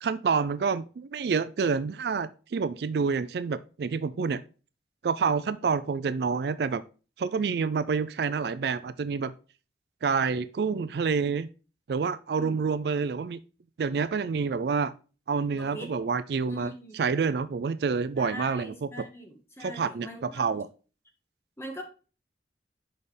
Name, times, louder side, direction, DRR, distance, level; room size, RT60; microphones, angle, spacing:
voice 1, 0.0-4.4 5.0-6.8 7.2-9.3 10.0-11.5 11.9-13.4 13.8-14.9 15.3-18.9 19.6-20.7, right 5 dB, 65° right, 15 dB, 0.4 m, -28 dB
voice 2, 15.5-16.0 16.5-17.0 18.2-20.6 21.6-21.8, equal, 15° left, 2 dB, 1.4 m, -42 dB
6.4 x 5.4 x 3.3 m, 0.35 s
head